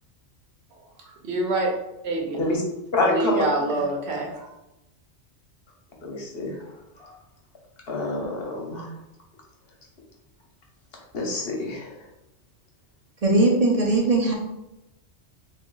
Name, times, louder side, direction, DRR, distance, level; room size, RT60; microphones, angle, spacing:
voice 1, 0.7-1.7 2.0-2.4 3.0-4.6, right 2 dB, 65° right, 1 dB, 1.0 m, -26 dB
voice 2, 2.9-3.4 6.0-7.2 7.9-8.9 11.1-11.9, left 2 dB, 55° left, -1 dB, 1.1 m, -27 dB
voice 3, 13.2-14.3, right 2 dB, 40° right, -1 dB, 0.7 m, -19 dB
3.0 x 2.6 x 3.7 m, 0.91 s
omnidirectional pair, 1.2 m